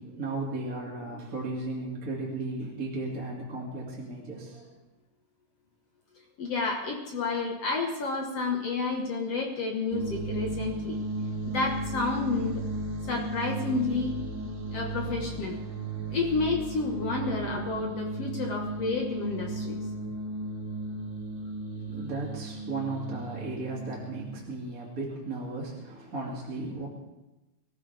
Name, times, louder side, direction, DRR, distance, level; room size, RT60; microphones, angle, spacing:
voice 1, 0.0-4.7 21.9-26.9, right 2 dB, 25° right, -4 dB, 2.5 m, -35 dB
voice 2, 6.4-11.0 11.5-12.6 13.1-14.2 14.7-15.6 16.1-19.8, left 3 dB, 55° left, 1 dB, 2.0 m, -30 dB
sound 1, 9.9-24.5, right 2 dB, 75° right, 3.7 m, -35 dB
24.0 x 14.5 x 3.5 m, 1.0 s
omnidirectional pair, 4.2 m